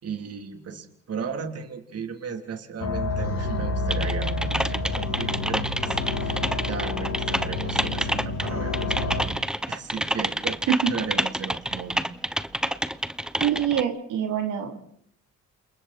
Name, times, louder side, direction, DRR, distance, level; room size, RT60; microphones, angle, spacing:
voice 1, 0.0-9.4 9.7-12.1, right 6 dB, 55° right, 5 dB, 3.4 m, -36 dB
sound 1, 2.8-9.2, left 2 dB, 65° left, 6.5 m, -29 dB
Typing, 3.9-13.8, equal, ahead, 0.9 m, -28 dB
voice 2, 13.4-14.7, right 9 dB, 85° right, 3 dB, 3.3 m, -24 dB
29.5 x 28.0 x 4.3 m, 0.63 s
cardioid pair, 90°, 30 cm